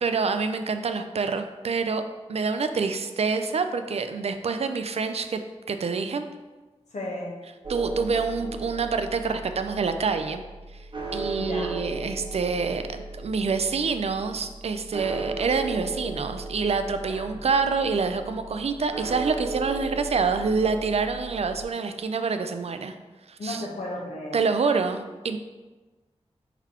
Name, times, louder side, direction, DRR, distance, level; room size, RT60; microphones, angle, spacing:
voice 1, 0.0-2.0 2.3-5.4 5.7-6.3 7.7-10.4 11.1-23.0 23.3-23.7 24.3-25.4, right 5 dB, 65° right, 8 dB, 0.4 m, -26 dB
voice 2, 6.9-7.3 11.4-11.8 17.1-17.2 23.4-24.4, left 1 dB, 85° left, -3 dB, 1.0 m, -34 dB
sound 1, 7.6-21.6, right 2 dB, 45° right, 0.7 m, -36 dB
4.4 x 4.0 x 2.9 m, 1.2 s
wide cardioid pair, 55°, 12 cm